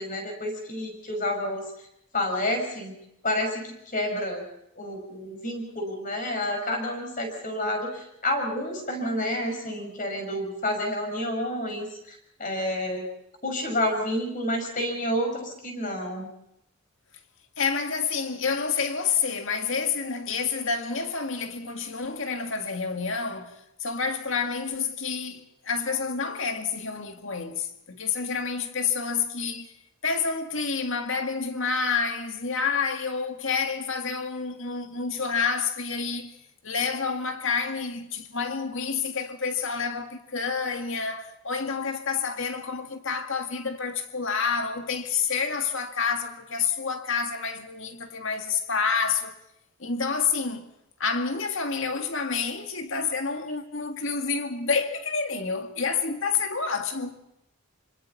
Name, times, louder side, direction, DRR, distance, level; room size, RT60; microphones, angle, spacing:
voice 1, 0.0-1.7 2.1-2.9 3.2-4.4 4.8-13.1 13.4-16.3, left 1 dB, 40° left, 6.0 m, -29 dB
voice 2, 17.6-29.7 30.0-36.4 36.6-49.3 49.8-50.7 51.0-57.2, left 5 dB, 65° left, 2.1 m, -28 dB
26.0 x 25.5 x 4.2 m
head